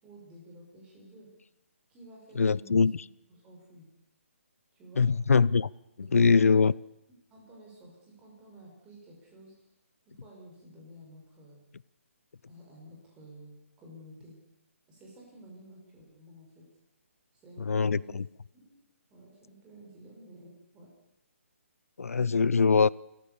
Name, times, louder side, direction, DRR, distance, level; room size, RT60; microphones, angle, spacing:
voice 1, 0.0-1.3 1.9-2.8 3.3-3.9 4.7-5.1 6.0-6.7 7.3-9.7 10.0-11.6 12.5-14.4 14.9-16.7 17.3-18.1 18.5-18.8 19.1-20.9, right 1 dB, 15° right, 6.0 m, -52 dB
voice 2, 2.4-2.9 5.0-5.7 6.0-6.7 17.6-18.2 22.0-22.9, left 5 dB, 80° left, 0.6 m, -23 dB
26.5 x 15.0 x 7.0 m
hypercardioid pair, 160°, 8 cm